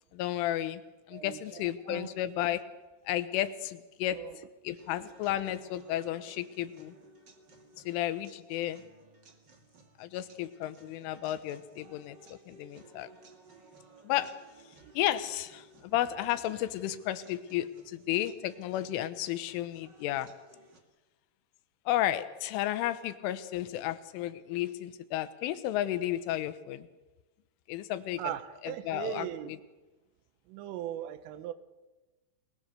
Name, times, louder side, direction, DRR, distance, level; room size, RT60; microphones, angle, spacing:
voice 1, 0.1-0.8 1.1-2.6 3.1-4.2 4.7-7.0 7.9-8.8 10.0-13.1 14.0-14.3 15.0-20.3 21.9-26.9 27.7-28.3 28.6-29.6, left 13 dB, 80° left, 12 dB, 3.5 m, -33 dB
voice 2, 1.1-2.1 4.1-4.3 14.8-14.9 28.2-29.5 30.5-31.5, right 12 dB, 85° right, 12 dB, 3.8 m, -39 dB
sound 1, 4.8-20.8, right 3 dB, 55° right, 1.2 m, -58 dB
27.5 x 20.0 x 6.8 m, 1.2 s
omnidirectional pair, 5.6 m